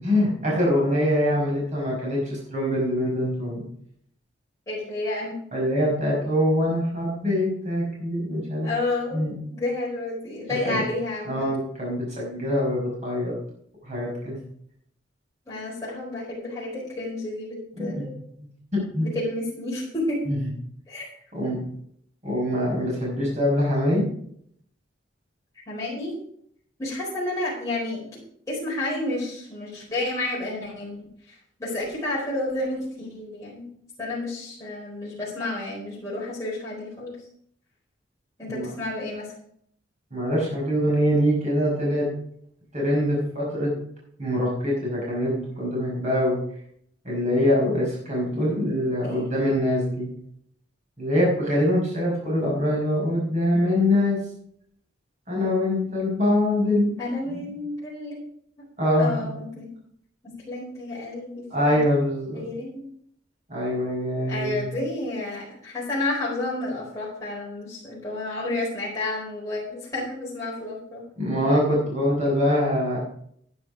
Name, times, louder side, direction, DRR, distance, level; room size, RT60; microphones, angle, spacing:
voice 1, 0.0-3.6 5.5-8.7 9.1-9.3 10.5-10.8 11.3-13.3 13.8-14.4 17.8-18.0 18.4-19.1 20.3-20.4 21.3-21.6 22.2-24.0 38.5-38.7 40.1-42.1 42.7-43.7 44.2-46.4 47.0-50.1 51.0-54.2 55.3-57.0 57.3-57.5 58.8-59.3 61.5-62.4 63.5-64.6 71.2-73.0, left 1 dB, 40° right, -4 dB, 5.4 m, -24 dB
voice 2, 4.7-5.4 8.6-9.2 9.5-11.5 15.5-18.2 19.0-20.3 20.9-21.1 25.7-26.2 26.8-28.1 28.5-31.0 31.3-33.7 34.0-37.2 38.4-39.3 49.0-49.3 57.0-58.2 59.0-59.7 60.2-61.9 62.3-62.9 64.3-71.1, left 2 dB, 15° left, -7 dB, 4.6 m, -31 dB
11.5 x 9.8 x 4.8 m, 0.67 s
head